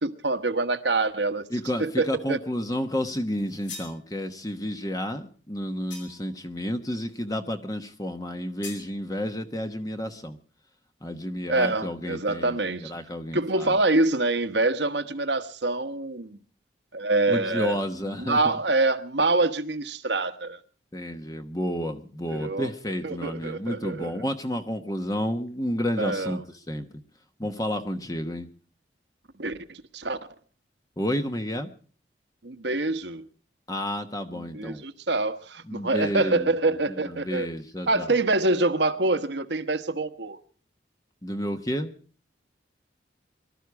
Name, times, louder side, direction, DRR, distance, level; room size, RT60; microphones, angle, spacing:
voice 1, 0.0-1.5 1.8-2.4 11.5-12.9 13.3-16.4 16.9-17.8 18.3-20.6 22.3-22.7 23.0-24.1 26.0-26.4 29.4-30.2 32.4-33.3 34.3-37.5 37.9-40.4, right 2 dB, 70° right, 1.2 m, -25 dB
voice 2, 1.5-10.4 11.0-13.8 17.3-18.6 20.9-26.9 27.4-28.5 31.0-31.7 33.7-34.8 35.6-38.1 41.2-41.9, equal, 20° left, 1.0 m, -31 dB
sound 1, 3.4-4.0 5.9-6.3 8.6-8.9, left 5 dB, 85° left, 5.0 m, -41 dB
23.5 x 13.0 x 4.7 m
head